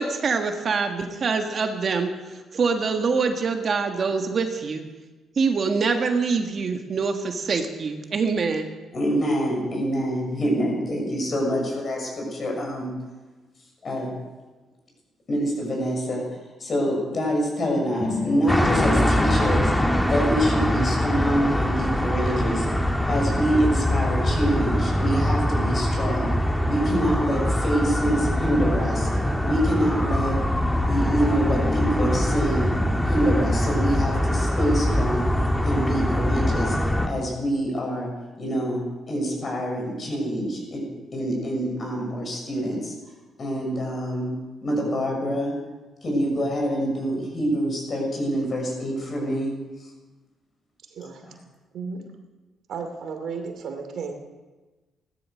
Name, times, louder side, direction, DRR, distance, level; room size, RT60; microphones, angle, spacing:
voice 1, 0.0-4.8 5.4-8.7, right 4 dB, 50° right, 5 dB, 1.7 m, -25 dB
voice 2, 8.9-12.9 13.8-14.1 15.3-16.2 16.6-19.7 20.1-22.7 23.1-26.3 26.6-29.1 29.4-30.4 30.9-32.7 33.0-35.3 35.6-36.8 37.0-38.1 38.4-38.8 39.1-40.8 41.1-42.9 43.4-44.3 44.6-45.5 46.0-49.5, equal, 45° left, 1 dB, 6.7 m, -26 dB
sound 1, 18.0-23.9, left 3 dB, 25° left, 1.2 m, -33 dB
sound 2, 18.5-37.1, equal, 5° left, 1.5 m, -23 dB
voice 3, 50.9-51.2 51.7-52.1 52.7-54.1, right 5 dB, 70° right, 5 dB, 2.6 m, -34 dB
16.0 x 13.0 x 6.4 m, 1.2 s
cardioid pair, 90°, 0 cm